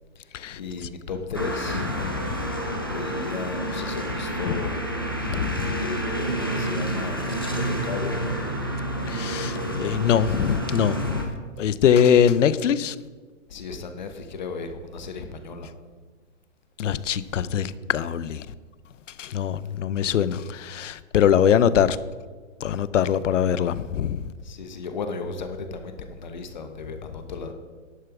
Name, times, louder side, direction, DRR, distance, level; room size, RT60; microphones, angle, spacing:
voice 1, 0.2-1.9 2.9-4.9 5.2-5.3 5.8-8.5 13.5-15.7 24.4-27.5, left 4 dB, 35° left, 1.0 m, -35 dB
sound 1, 1.3-11.2, right 1 dB, 20° left, 0.4 m, -29 dB
voice 2, 2.0-2.4 4.5-4.6 5.3-5.8 9.1-11.3 11.6-12.9 16.8-18.5 19.2-22.0 22.6-24.2, left 8 dB, 70° left, 0.6 m, -22 dB
11.0 x 6.6 x 5.9 m
hypercardioid pair, 175°, 39 cm